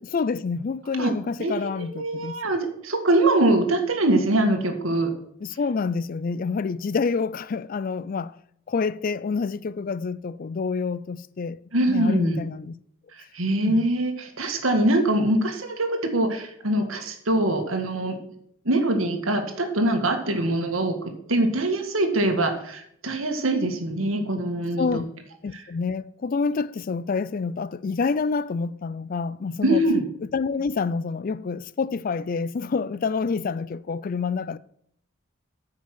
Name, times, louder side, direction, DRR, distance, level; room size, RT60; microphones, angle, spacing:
voice 1, 0.0-2.4 5.4-8.3 8.7-11.6 11.9-12.7 13.7-13.9 24.8-25.1 25.4-29.8 30.3-34.6, left 4 dB, 45° left, 0.4 m, -27 dB
voice 2, 1.4-5.1 11.7-12.4 13.3-18.2 18.7-25.0 25.5-25.6 29.6-30.1, right 1 dB, 90° right, 1.8 m, -23 dB
9.4 x 5.7 x 6.0 m
head